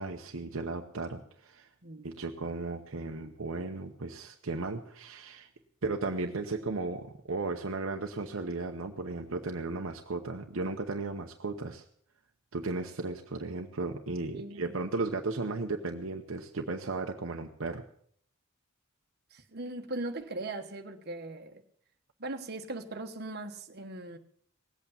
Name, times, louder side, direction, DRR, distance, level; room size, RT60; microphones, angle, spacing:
voice 1, 0.0-1.7 2.0-5.5 5.8-11.8 12.5-17.8, right 3 dB, 65° right, 3 dB, 0.9 m, -35 dB
voice 2, 1.8-2.2 14.3-14.7 19.3-21.6 22.2-24.2, right 2 dB, 50° right, 5 dB, 1.3 m, -39 dB
18.5 x 8.4 x 7.1 m, 0.64 s
head